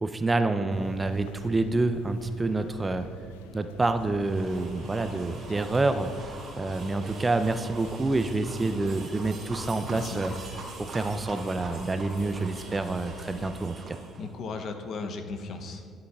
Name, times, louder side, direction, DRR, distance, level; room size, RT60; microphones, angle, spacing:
voice 1, 0.0-3.1 3.5-10.3 10.8-14.0, right 2 dB, 25° right, 9 dB, 0.4 m, -28 dB
sound 1, 0.7-13.5, left 6 dB, 90° left, 0.3 m, -47 dB
sound 2, 4.2-14.3, right 3 dB, 50° right, 1.4 m, -43 dB
voice 2, 9.7-10.2 14.2-15.9, left 4 dB, 60° left, 6 dB, 0.7 m, -37 dB
12.0 x 7.6 x 2.4 m, 2.1 s
hypercardioid pair, 60°, 0 cm